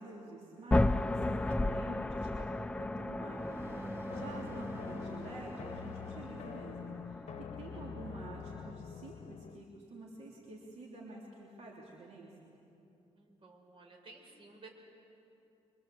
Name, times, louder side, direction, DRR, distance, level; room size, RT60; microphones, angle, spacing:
voice 1, 0.0-7.3 7.6-12.5, right 2 dB, 70° right, -4 dB, 3.4 m, -48 dB
sound 1, 0.7-8.7, left 2 dB, 10° left, 0.5 m, -35 dB
sound 2, 1.5-7.1, equal, 25° right, 1.9 m, -48 dB
sound 3, 4.1-9.7, left 7 dB, 80° left, 0.9 m, -46 dB
voice 2, 13.2-14.8, right 3 dB, 50° right, 1 dB, 4.6 m, -55 dB
25.0 x 24.5 x 7.8 m, 2.9 s
wide cardioid pair, 120°, 11 cm